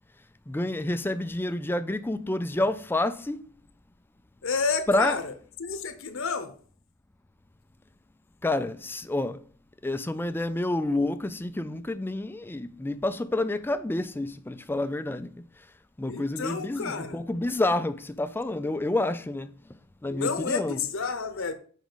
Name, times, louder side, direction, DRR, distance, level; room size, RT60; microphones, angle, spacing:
voice 1, 0.5-3.4 4.9-5.2 8.4-9.4 9.8-15.3 16.0-19.5 20.0-20.8, left 2 dB, 10° left, 0.4 m, -28 dB
voice 2, 4.4-5.3 5.6-6.5 16.1-17.2 20.1-21.5, left 5 dB, 65° left, 0.9 m, -30 dB
7.1 x 4.9 x 3.9 m
head